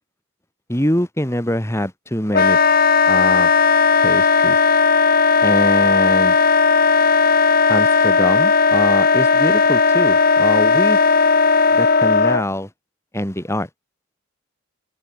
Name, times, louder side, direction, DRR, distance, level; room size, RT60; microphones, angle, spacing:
voice 1, 0.7-2.6 3.1-3.5 4.0-4.6 5.4-6.4 7.7-11.0 11.7-12.7 13.1-13.7, equal, 10° left, 2.7 m, -23 dB
Wind instrument woodwind instrument, 2.3-12.4, left 4 dB, 40° left, 1.5 m, -15 dB
head